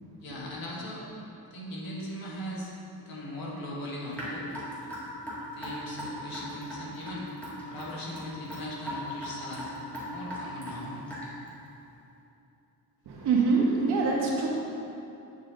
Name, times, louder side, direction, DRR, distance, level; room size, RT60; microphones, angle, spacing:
voice 1, 0.2-1.0 1.4-4.4 5.5-7.3 7.6-9.7 10.1-11.0, left 1 dB, 60° left, -3 dB, 1.7 m, -39 dB
Raindrop / Drip, 4.1-11.5, equal, 5° left, 1.9 m, -38 dB
voice 2, 13.0-14.5, right 4 dB, 75° right, -3 dB, 1.6 m, -24 dB
8.1 x 7.1 x 3.9 m, 2.9 s
cardioid pair, 175°, 40 cm